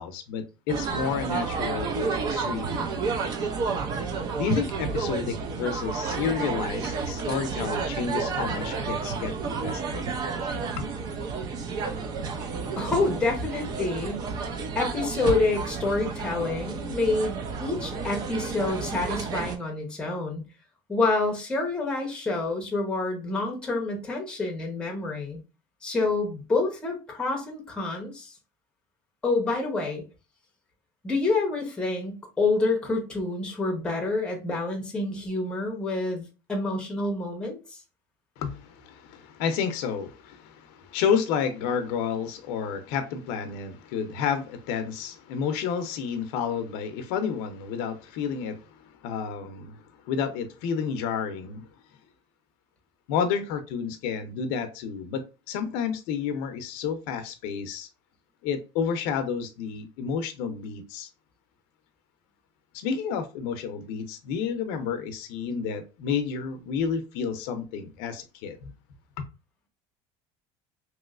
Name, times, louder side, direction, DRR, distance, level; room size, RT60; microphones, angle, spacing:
voice 1, 0.0-2.9 4.4-10.1 10.8-10.9 38.4-51.7 53.1-57.9 58.4-61.1 62.7-68.7 69.2-69.3, left 7 dB, 70° left, 0.6 m, -30 dB
sound 1, 0.7-19.6, right 4 dB, 30° right, 0.4 m, -31 dB
voice 2, 12.8-14.3 14.7-20.4 20.9-25.4 25.8-28.3 29.2-30.1 31.0-37.8, left 3 dB, 5° left, 0.7 m, -28 dB
3.0 x 3.0 x 2.4 m
cardioid pair, 180°, 13 cm